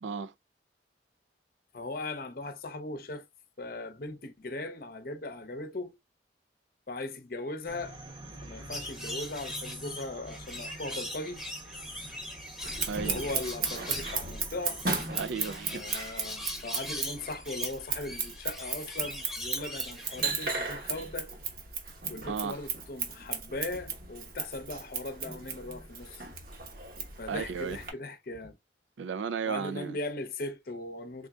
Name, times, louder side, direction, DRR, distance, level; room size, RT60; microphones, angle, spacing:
voice 1, 0.0-0.3 12.9-13.3 15.2-15.8 22.3-22.6 27.3-27.8 29.0-30.0, right 6 dB, 90° right, 0.4 m, -34 dB
voice 2, 1.7-3.2 3.6-6.0 6.9-8.0 8.4-11.4 13.0-14.8 15.7-21.3 22.1-26.2 27.2-28.6 29.4-31.3, left 2 dB, 50° left, 0.7 m, -39 dB
sound 1, 7.6-15.0, right 1 dB, 30° right, 0.9 m, -47 dB
sound 2, 8.7-20.2, left 1 dB, ahead, 0.9 m, -41 dB
Scissors, 12.6-27.9, right 5 dB, 50° right, 1.0 m, -36 dB
3.7 x 3.7 x 2.3 m
head